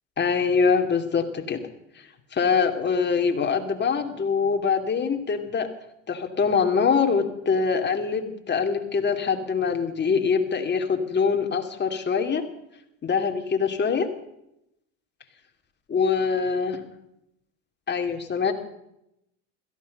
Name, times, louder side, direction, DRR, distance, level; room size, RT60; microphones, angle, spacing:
voice 1, 0.2-1.6 2.3-5.7 6.1-12.4 13.0-14.1 15.9-16.8 17.9-18.5, left 5 dB, 30° left, 5 dB, 2.7 m, -24 dB
16.5 x 15.0 x 5.4 m, 0.81 s
supercardioid pair, 95°, 38 cm